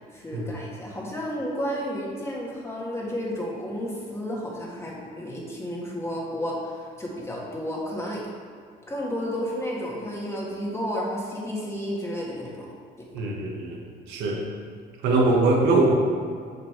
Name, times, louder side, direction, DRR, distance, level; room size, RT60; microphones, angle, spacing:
voice 1, 0.1-8.3 8.9-12.7 13.0-13.1, equal, 15° left, -4 dB, 1.6 m, -32 dB
voice 2, 13.1-13.8 14.1-14.4 15.0-16.0, right 2 dB, 85° right, 0 dB, 1.2 m, -22 dB
6.3 x 5.3 x 4.4 m, 2.1 s
cardioid pair, 110°, 17 cm